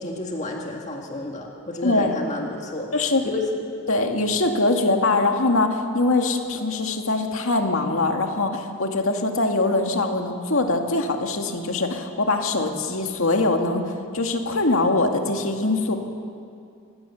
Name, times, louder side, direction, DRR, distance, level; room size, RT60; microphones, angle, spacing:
voice 1, 0.0-3.5, left 2 dB, 30° left, 0 dB, 1.9 m, -31 dB
voice 2, 1.8-2.2 2.9-3.2 3.9-16.0, left 2 dB, 65° left, 3 dB, 2.2 m, -22 dB
27.0 x 18.0 x 7.1 m, 2.4 s
head